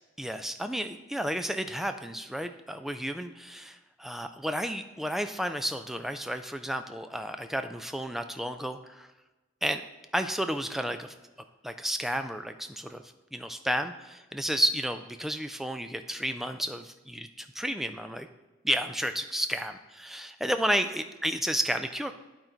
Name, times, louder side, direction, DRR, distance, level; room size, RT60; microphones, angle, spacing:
voice 1, 0.2-9.1 9.6-9.8 10.1-11.1 11.6-13.0 13.3-18.3 18.6-22.1, equal, ahead, 8 dB, 0.3 m, -32 dB
11.0 x 4.0 x 4.4 m, 1.1 s
head